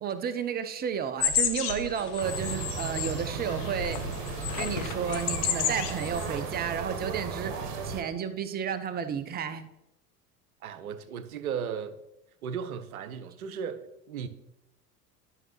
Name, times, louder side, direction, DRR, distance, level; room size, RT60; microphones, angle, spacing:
voice 1, 0.0-4.1 4.6-9.6, right 7 dB, 20° right, 11 dB, 0.6 m, -32 dB
sound 1, 1.2-6.4 6.6-6.8, left 8 dB, 40° left, 1.0 m, -32 dB
sound 2, 2.2-8.0, right 5 dB, 50° right, 1.2 m, -35 dB
voice 2, 10.6-12.0 12.4-14.3, right 7 dB, 65° right, 12 dB, 0.8 m, -36 dB
11.0 x 5.7 x 3.0 m, 0.88 s
figure-of-eight pair, 70°, 46 cm